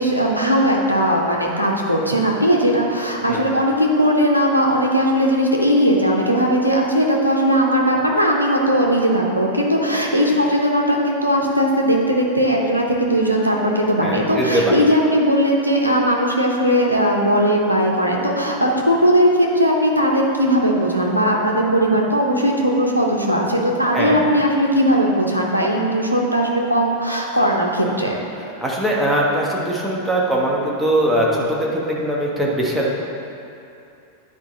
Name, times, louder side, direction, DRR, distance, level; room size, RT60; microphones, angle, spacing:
voice 1, 0.0-28.1, equal, 85° right, -1 dB, 0.9 m, -18 dB
voice 2, 14.0-14.7 23.9-24.2 28.6-32.9, right 1 dB, 5° right, -4 dB, 1.3 m, -21 dB
9.8 x 4.7 x 3.9 m, 2.7 s
figure-of-eight pair, 90°, 0 cm